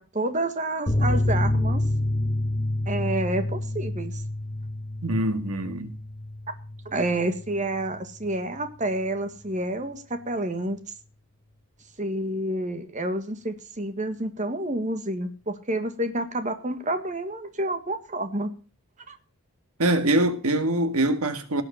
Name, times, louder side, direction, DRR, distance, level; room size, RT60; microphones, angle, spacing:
voice 1, 0.0-1.8 2.9-4.2 6.9-10.8 12.0-18.5 19.1-19.2, right 1 dB, 35° right, 1.7 m, -29 dB
sound 1, 0.9-8.0 8.2-8.3 8.7-8.8, left 1 dB, 25° left, 1.4 m, -28 dB
voice 2, 5.0-6.0 19.8-21.6, right 1 dB, 85° right, 2.0 m, -24 dB
18.0 x 8.1 x 5.7 m
head